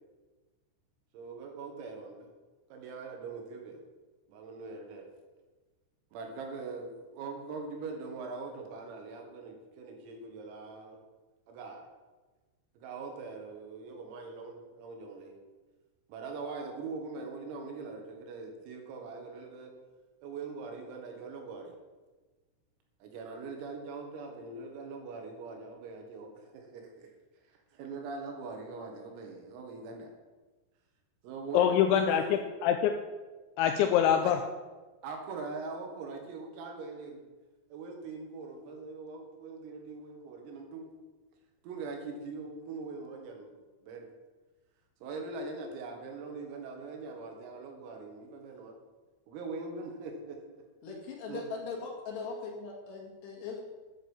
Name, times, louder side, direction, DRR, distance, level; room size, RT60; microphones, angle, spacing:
voice 1, 1.1-2.3 2.7-3.8 4.3-5.1 6.1-11.0 11.5-11.9 12.8-15.3 16.1-19.7 20.2-21.7 23.0-27.1 27.5-30.1 31.2-32.4 34.2-34.3 35.0-37.2 37.7-40.9 41.6-43.6 43.8-44.1 45.0-48.8 49.3-50.6 51.3-51.5, right 4 dB, 90° right, 2 dB, 4.6 m, -42 dB
voice 2, 31.5-32.9 33.6-34.4, left 9 dB, 90° left, 7 dB, 2.6 m, -25 dB
voice 3, 50.8-53.6, left 5 dB, 60° left, 0 dB, 3.7 m, -40 dB
10.5 x 8.2 x 7.3 m, 1.3 s
omnidirectional pair, 5.9 m